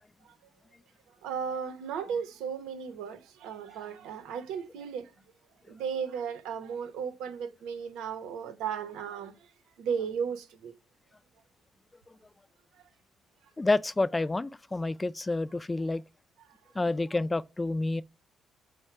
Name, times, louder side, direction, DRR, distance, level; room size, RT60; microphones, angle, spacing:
voice 1, 1.2-5.1 5.7-9.5 9.8-10.7, right 7 dB, 85° right, 0.7 m, -35 dB
voice 2, 13.6-16.0 16.8-18.0, left 2 dB, 20° left, 0.3 m, -29 dB
4.5 x 2.1 x 4.5 m
supercardioid pair, 65°, 0 cm